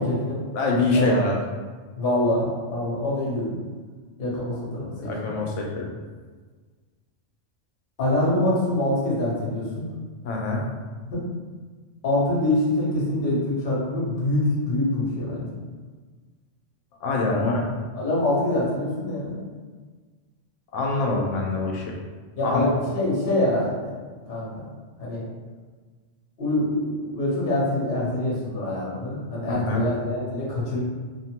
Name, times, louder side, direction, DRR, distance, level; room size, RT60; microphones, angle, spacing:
voice 1, 0.0-0.4 0.9-1.2 2.0-3.6 4.2-5.5 8.0-9.9 11.1-11.2 12.0-15.5 17.4-17.5 18.0-19.4 22.4-24.0 24.3-24.7 25.0-25.2 26.4-30.8, left 1 dB, 50° left, -6 dB, 1.0 m, -25 dB
voice 2, 0.5-1.3 5.0-5.9 10.2-10.7 17.0-17.6 20.7-21.9 22.4-22.7 29.5-29.8, left 3 dB, 80° left, -1 dB, 0.9 m, -24 dB
3.0 x 2.1 x 2.8 m, 1.4 s
omnidirectional pair, 1.3 m